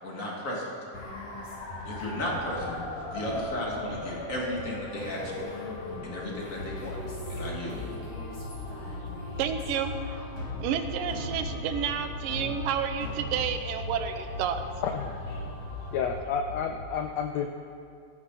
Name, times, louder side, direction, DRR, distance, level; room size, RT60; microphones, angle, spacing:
voice 1, 0.0-0.7 1.8-5.6 6.0-7.0 7.3-7.8, left 1 dB, 25° left, 2.5 m, -34 dB
sound 1, 0.9-16.0, left 1 dB, 50° left, 3.5 m, -39 dB
sound 2, 6.6-16.9, left 3 dB, 75° left, 4.1 m, -40 dB
voice 2, 9.4-9.9 10.6-14.6, right 8 dB, 90° right, 2.5 m, -30 dB
voice 3, 14.8-15.1 15.9-17.5, left 7 dB, 90° left, 1.5 m, -30 dB
16.0 x 15.0 x 4.2 m
omnidirectional pair, 3.8 m